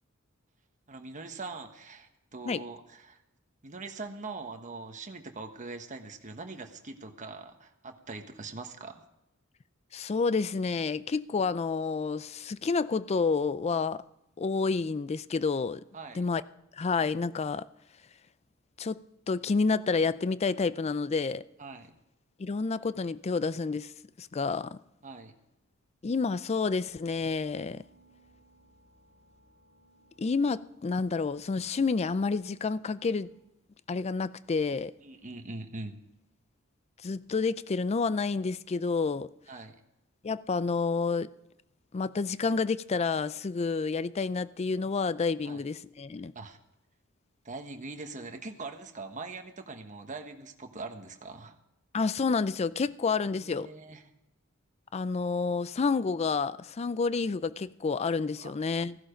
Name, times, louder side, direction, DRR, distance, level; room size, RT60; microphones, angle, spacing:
voice 1, 0.9-3.2 3.6-9.0 15.9-16.2 21.6-21.9 25.0-25.3 35.0-36.0 39.5-39.8 45.4-45.6 46.3-46.6 47.4-51.6 53.3-54.0 58.4-58.5, right 3 dB, 35° right, 1.3 m, -42 dB
voice 2, 9.9-14.0 14.4-15.8 16.1-16.4 16.8-17.6 18.8-19.0 19.3-21.4 22.4-23.9 24.2-24.8 26.0-27.8 30.2-33.3 33.9-34.9 37.0-39.3 40.2-41.3 41.9-46.3 51.9-53.7 54.9-59.0, left 4 dB, 30° left, 0.4 m, -29 dB
sound 1, 26.7-33.3, right 2 dB, 55° left, 3.7 m, -63 dB
16.0 x 11.5 x 5.1 m
head